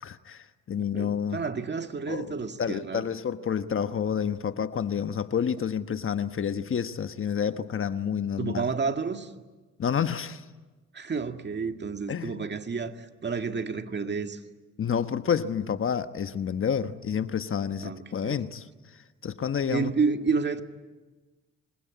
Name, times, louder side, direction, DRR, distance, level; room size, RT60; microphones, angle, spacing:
voice 1, 0.0-1.4 2.1-8.7 9.8-10.4 12.1-12.5 14.8-18.7 19.2-19.9, left 7 dB, 45° left, 11 dB, 1.2 m, -29 dB
voice 2, 0.8-3.1 8.4-9.3 10.9-14.4 17.8-18.4 19.7-20.6, right 5 dB, 35° right, 7 dB, 2.0 m, -30 dB
26.5 x 21.5 x 9.5 m, 1.2 s
cardioid pair, 90°, 30 cm